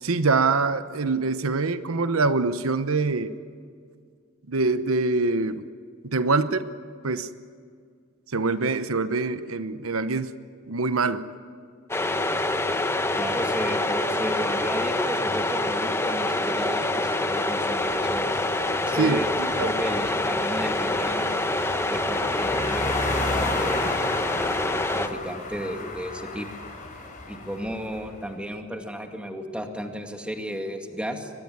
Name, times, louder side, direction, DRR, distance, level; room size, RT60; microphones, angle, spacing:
voice 1, 0.0-3.3 4.5-5.6 6.0-6.7 7.0-7.3 8.3-10.3 10.7-11.3 18.9-19.7, right 3 dB, 85° right, 12 dB, 0.9 m, -24 dB
sound 1, 11.9-25.1, left 2 dB, 10° left, 1.1 m, -26 dB
voice 2, 13.2-18.3 18.8-19.3 19.6-21.4 21.9-23.0 23.3-23.9 24.4-24.6 24.9-26.5 27.3-31.3, equal, 5° right, 4 dB, 2.2 m, -33 dB
sound 2, 17.9-28.1, left 2 dB, 40° left, 5.3 m, -35 dB
23.5 x 20.0 x 9.5 m, 2.1 s
head